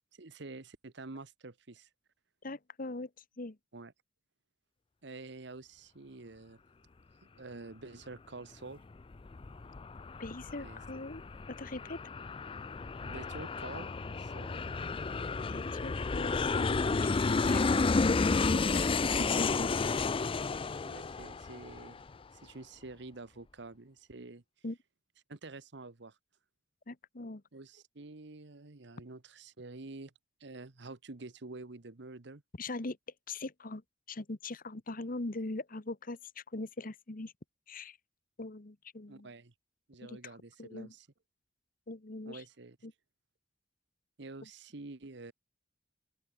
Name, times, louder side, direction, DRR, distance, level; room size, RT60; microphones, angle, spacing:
voice 1, 0.1-1.9 3.7-3.9 5.0-6.6 7.2-8.8 10.5-10.8 13.0-13.9 14.2-14.5 20.8-22.0 22.4-24.4 25.3-26.2 27.5-30.1 30.4-32.4 39.1-39.5 39.9-41.1 42.2-42.8 44.2-45.3, right 3 dB, 70° right, 1.2 m, -48 dB
voice 2, 2.4-3.1 3.4-3.6 10.2-11.2 11.6-12.0 15.5-19.7 24.6-24.8 26.9-27.4 32.6-33.0 33.3-33.8 34.1-37.3 37.7-38.0 38.4-39.3 40.1-40.2 40.6-40.9 41.9-42.4 42.8-42.9, left 2 dB, 50° left, 1.3 m, -41 dB
Aircraft, 8.9-22.1, left 4 dB, 30° left, 0.5 m, -32 dB
open air
head